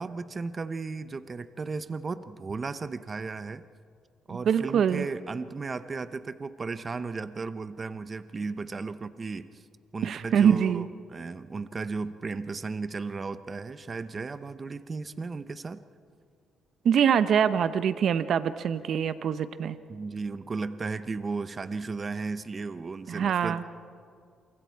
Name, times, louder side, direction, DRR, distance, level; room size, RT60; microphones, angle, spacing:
voice 1, 0.0-3.6 4.3-9.6 9.9-15.8 19.9-23.6, right 4 dB, 35° right, 13 dB, 0.8 m, -35 dB
voice 2, 4.5-5.1 10.0-10.9 16.8-19.8 23.1-23.6, right 8 dB, 65° right, 12 dB, 0.8 m, -24 dB
28.0 x 24.5 x 4.6 m, 2.2 s
cardioid pair, 90°, 0 cm